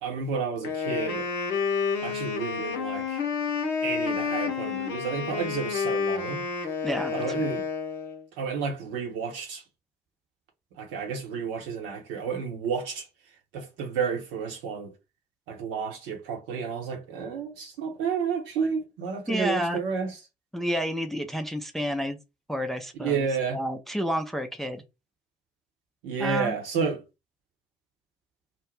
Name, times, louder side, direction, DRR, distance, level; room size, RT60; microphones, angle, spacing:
voice 1, 0.0-1.3 2.0-3.2 3.8-6.4 7.1-7.6 8.4-9.6 10.8-13.1 13.5-14.9 15.5-20.1 23.0-23.6 26.0-27.0, right 5 dB, 65° right, 0.9 m, -31 dB
Wind instrument woodwind instrument, 0.6-8.2, left 6 dB, 65° left, 0.7 m, -29 dB
voice 2, 6.8-7.1 7.4-7.5 19.3-19.8 20.5-22.2 22.5-24.8 26.2-26.6, equal, ahead, 0.5 m, -30 dB
2.6 x 2.1 x 3.2 m
figure-of-eight pair, 45°, 20 cm